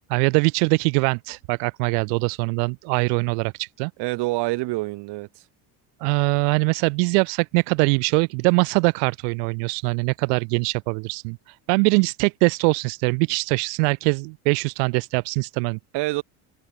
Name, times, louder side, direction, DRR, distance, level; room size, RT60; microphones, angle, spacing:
voice 1, 0.1-3.9 6.0-11.4 11.7-15.8, right 40 dB or more, 90° right, 0.6 m, -22 dB
voice 2, 4.0-5.3 15.9-16.2, right 21 dB, 60° right, 1.0 m, -26 dB
cardioid pair, 115°, 46 cm